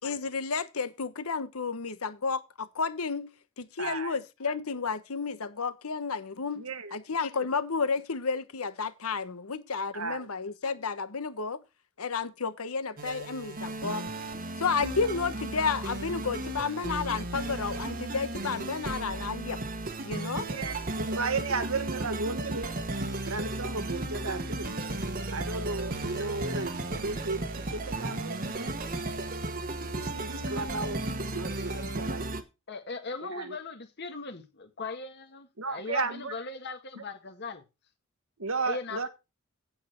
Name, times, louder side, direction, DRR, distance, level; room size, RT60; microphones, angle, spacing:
voice 1, 0.0-3.3 3.6-6.6 6.9-11.6 12.0-14.0 14.6-19.6 20.0-20.5, left 5 dB, 85° left, 1.0 m, -31 dB
voice 2, 3.8-4.2 6.5-7.0 9.9-10.3 20.4-22.8 23.3-24.7 25.3-28.8 30.0-32.3 33.2-33.6 35.6-36.3 37.0-37.1 38.4-39.1, right 3 dB, 70° right, 1.4 m, -34 dB
sound 1, 13.0-32.4, right 2 dB, 40° right, 1.3 m, -35 dB
voice 3, 32.7-37.6 38.6-39.1, left 4 dB, 50° left, 1.8 m, -39 dB
8.8 x 8.6 x 4.4 m
head